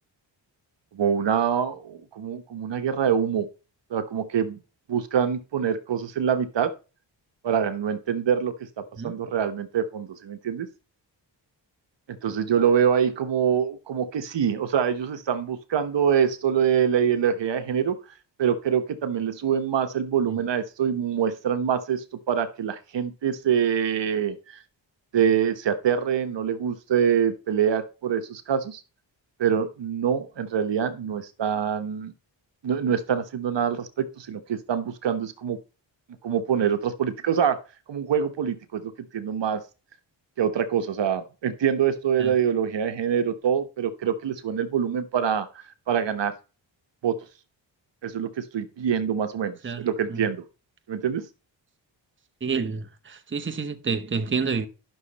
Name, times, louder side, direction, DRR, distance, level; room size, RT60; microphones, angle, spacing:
voice 1, 0.9-3.5 3.9-4.6 4.9-6.7 7.4-8.7 9.0-10.7 12.1-18.0 18.4-24.6 25.1-28.8 29.4-32.1 32.6-35.6 36.2-37.6 37.9-39.6 40.4-46.3 47.0-47.2 48.0-50.4 50.9-51.3, right 8 dB, 70° right, 1.2 m, -25 dB
voice 2, 49.6-50.3 52.4-54.7, right 5 dB, 25° right, 1.0 m, -29 dB
11.0 x 6.4 x 4.2 m
cardioid pair, 95°, 45 cm